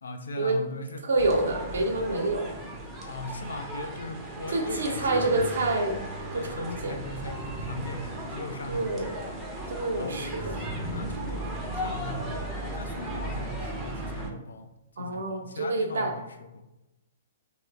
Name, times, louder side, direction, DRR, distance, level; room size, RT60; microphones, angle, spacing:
voice 1, 0.0-1.0 2.5-2.6 3.0-5.5 6.3-9.5 10.0-14.7 15.0-16.6, left 2 dB, 65° left, 6 dB, 0.4 m, -39 dB
voice 2, 1.0-2.4 4.5-6.0 6.3-6.9 8.7-9.1 9.7-10.6 15.0-16.1, right 2 dB, 60° right, 2 dB, 0.6 m, -27 dB
sound 1, 1.2-14.3, right 1 dB, 15° right, 0.6 m, -36 dB
3.1 x 2.1 x 3.3 m, 0.95 s
figure-of-eight pair, 115°, 0 cm